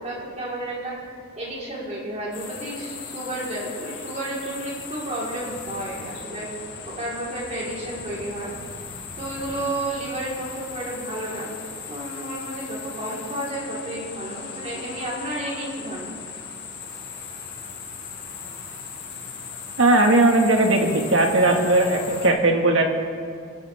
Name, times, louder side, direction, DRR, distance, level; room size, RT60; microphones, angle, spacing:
voice 1, 0.0-6.5 7.0-8.5 9.2-11.5 11.9-16.2, right 1 dB, 35° right, -6 dB, 3.9 m, -32 dB
sound 1, 2.3-22.3, left 5 dB, 60° left, 4.6 m, -38 dB
voice 2, 19.8-22.8, right 2 dB, 65° right, 2 dB, 1.7 m, -18 dB
25.5 x 13.0 x 3.5 m, 2.2 s
head